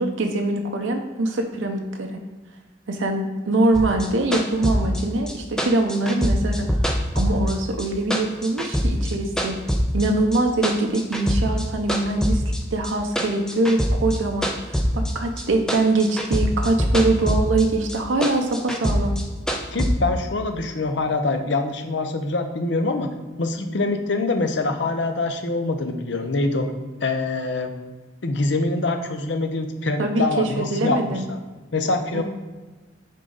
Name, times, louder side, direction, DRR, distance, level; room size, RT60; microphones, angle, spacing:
voice 1, 0.0-2.2 2.9-9.6 9.9-12.4 12.7-19.1 30.0-31.3 32.1-32.2, right 2 dB, 90° right, 3 dB, 0.7 m, -23 dB
sound 1, 3.7-7.9 8.1-10.1 10.3-11.6 11.9-15.4 15.7-17.6 17.9-19.9, equal, 5° left, 0.5 m, -23 dB
voice 2, 19.7-23.1 23.4-26.7 27.0-27.7 28.2-31.4 31.7-32.2, left 3 dB, 65° left, 6 dB, 0.7 m, -24 dB
6.4 x 3.9 x 3.9 m, 1.3 s
head